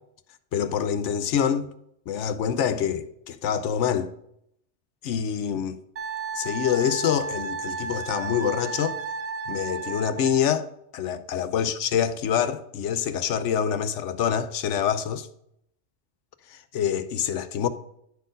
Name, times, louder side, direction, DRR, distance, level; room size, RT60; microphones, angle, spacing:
voice 1, 0.5-1.7 2.1-4.1 5.0-5.8 6.3-9.0 9.5-10.7 10.9-15.3 16.5-17.7, left 8 dB, 75° left, 0.9 m, -26 dB
Wind instrument woodwind instrument, 6.0-10.4, right 4 dB, 55° right, 0.4 m, -33 dB
10.5 x 4.2 x 5.1 m
omnidirectional pair, 1.3 m